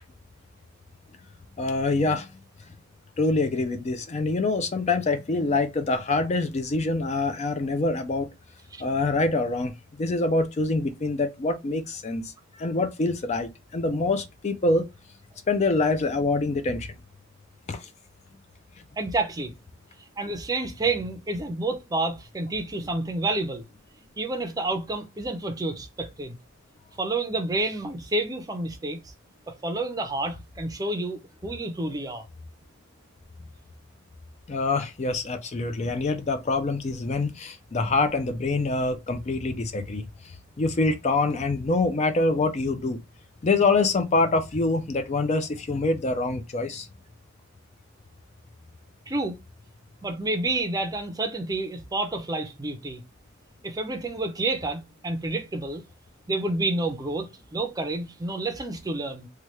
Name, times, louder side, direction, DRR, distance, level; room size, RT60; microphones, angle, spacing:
voice 1, 1.6-2.3 3.2-8.3 8.8-12.3 12.6-14.9 15.5-16.9 17.7-17.9 34.5-40.1 40.6-43.0 43.4-46.9, left 3 dB, 35° left, 0.4 m, -25 dB
voice 2, 19.0-19.5 20.2-23.7 24.2-26.4 27.0-29.1 29.5-32.2 49.1-49.4 50.0-53.0 53.6-55.8 56.3-59.3, right 2 dB, 20° right, 0.5 m, -29 dB
3.2 x 2.3 x 2.9 m
head